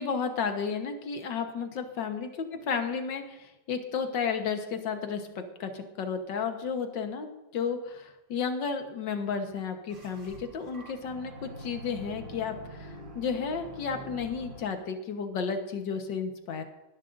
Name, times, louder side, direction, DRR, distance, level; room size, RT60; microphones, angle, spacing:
voice 1, 0.0-16.6, left 6 dB, 90° left, 6 dB, 1.9 m, -33 dB
sound 1, 9.9-14.9, right 1 dB, 55° right, 4.3 m, -45 dB
20.0 x 11.0 x 2.6 m, 1.0 s
omnidirectional pair, 1.9 m